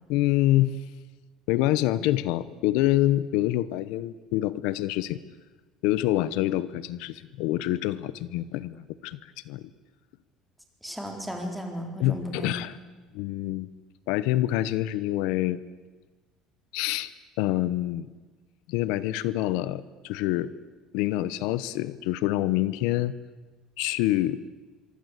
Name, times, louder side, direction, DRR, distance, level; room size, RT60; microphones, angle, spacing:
voice 1, 0.1-0.8 1.5-5.2 5.8-9.7 12.0-12.8 13.1-13.7 14.1-15.6 16.7-17.1 17.4-18.1 18.7-20.5 20.9-23.1 23.8-24.4, left 15 dB, 80° left, 17 dB, 0.9 m, -26 dB
voice 2, 10.8-12.8, equal, ahead, 2 dB, 4.1 m, -35 dB
26.5 x 24.0 x 8.2 m, 1.3 s
cardioid pair, 160°, 0 cm